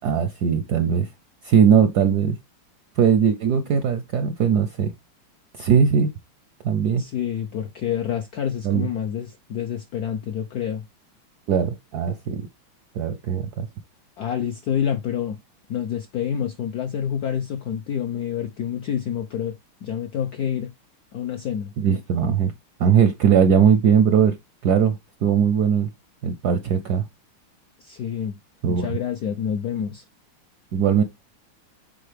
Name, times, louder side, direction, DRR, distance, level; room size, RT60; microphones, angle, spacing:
voice 1, 0.0-1.1 1.4-2.4 3.0-4.9 5.6-6.1 6.6-7.0 8.6-8.9 11.5-12.5 12.9-13.7 21.8-22.5 22.8-24.4 24.6-25.0 25.2-25.9 26.2-27.0 28.6-29.0 30.7-31.0, right 7 dB, 75° right, 0.9 m, -19 dB
voice 2, 7.0-10.8 14.2-15.4 15.7-20.7 21.1-21.7 27.8-28.4 28.7-30.0, left 9 dB, 70° left, 0.9 m, -28 dB
7.7 x 4.1 x 3.3 m
omnidirectional pair, 2.4 m